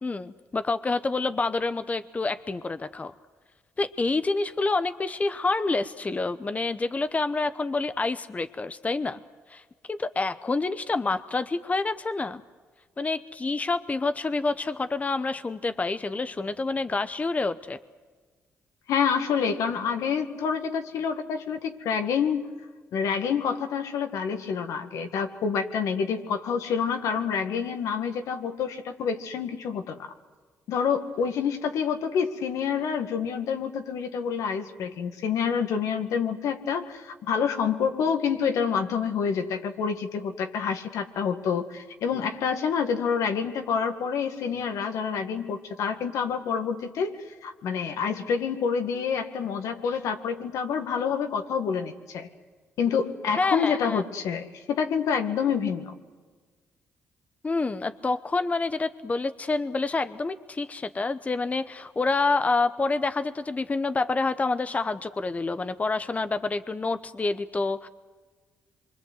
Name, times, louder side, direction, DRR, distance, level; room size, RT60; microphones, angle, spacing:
voice 1, 0.0-3.1 3.8-9.2 9.5-9.6 9.9-12.4 13.0-17.8 53.4-54.0 57.4-67.9, left 3 dB, 25° left, 11 dB, 0.9 m, -28 dB
voice 2, 18.9-22.5 22.9-30.1 30.7-52.3 52.8-56.0, left 6 dB, 80° left, 6 dB, 1.9 m, -27 dB
26.0 x 24.0 x 7.9 m, 1.4 s
cardioid pair, 75°, 5 cm